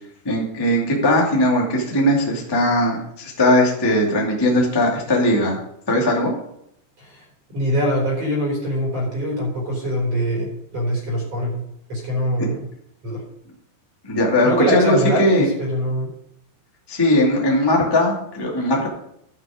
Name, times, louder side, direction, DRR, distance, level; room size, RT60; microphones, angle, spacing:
voice 1, 0.2-5.6 5.9-6.3 14.0-15.5 16.9-18.9, left 1 dB, 10° left, -2 dB, 1.2 m, -19 dB
voice 2, 7.0-11.6 11.9-12.7 13.0-13.2 14.4-16.1, equal, 35° right, -4 dB, 4.5 m, -23 dB
13.5 x 6.6 x 5.0 m, 0.73 s
omnidirectional pair, 5.1 m